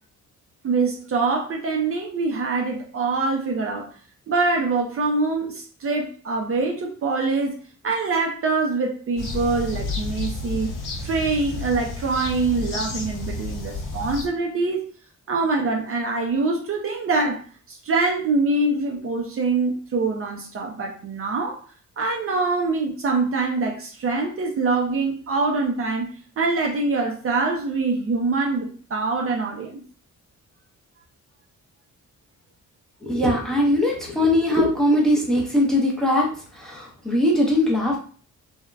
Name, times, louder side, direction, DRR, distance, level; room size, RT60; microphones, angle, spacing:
voice 1, 0.6-3.9 4.3-7.6 7.8-10.7 11.0-14.9 15.3-17.4 17.7-21.6 22.0-26.1 26.4-29.8, right 3 dB, 45° right, 1 dB, 0.4 m, -24 dB
sound 1, 9.2-14.2, left 3 dB, 85° left, 0.8 m, -31 dB
voice 2, 33.0-38.0, left 1 dB, ahead, -2 dB, 0.5 m, -21 dB
3.2 x 2.0 x 2.3 m, 0.43 s
wide cardioid pair, 160°, 31 cm